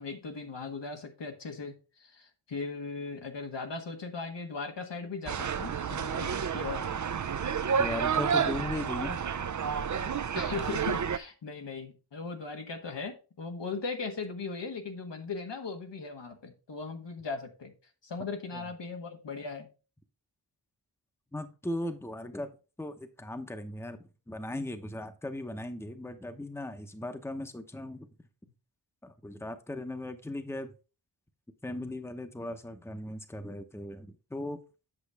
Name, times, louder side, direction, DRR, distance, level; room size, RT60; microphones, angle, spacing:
voice 1, 0.0-6.9 10.3-17.7 18.0-19.7, left 4 dB, 85° left, 1.5 m, -38 dB
sound 1, 5.3-11.2, right 7 dB, 45° right, 0.5 m, -30 dB
voice 2, 7.8-9.2 18.5-18.6 21.3-22.5 22.8-24.0 24.3-28.1 29.0-30.7 31.6-34.6, left 1 dB, 5° left, 0.8 m, -37 dB
8.5 x 6.3 x 3.4 m
wide cardioid pair, 85°, 42 cm